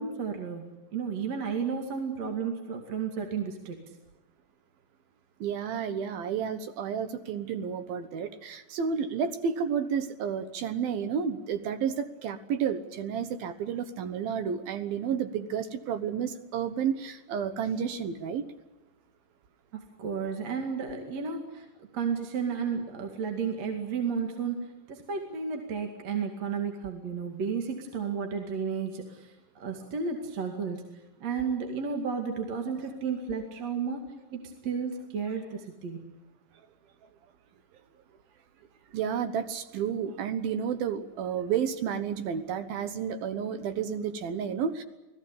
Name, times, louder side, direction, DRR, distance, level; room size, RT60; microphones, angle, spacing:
voice 1, 0.0-3.8 20.0-21.7 21.9-29.3 29.6-30.8 31.2-34.0 34.3-36.1, right 6 dB, 45° right, 3.1 m, -32 dB
voice 2, 5.4-18.4 38.9-44.8, right 7 dB, 70° right, 2.7 m, -31 dB
29.0 x 18.5 x 8.5 m
omnidirectional pair, 4.8 m